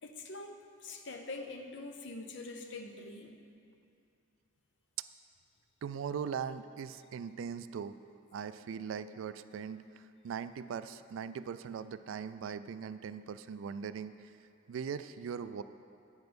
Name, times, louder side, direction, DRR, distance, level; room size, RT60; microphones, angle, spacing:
voice 1, 0.0-3.4, left 2 dB, 60° left, 4 dB, 0.7 m, -44 dB
voice 2, 5.8-8.0 8.3-14.2 14.7-15.6, right 7 dB, 75° right, 12 dB, 0.3 m, -40 dB
8.9 x 5.2 x 6.1 m, 2.4 s
head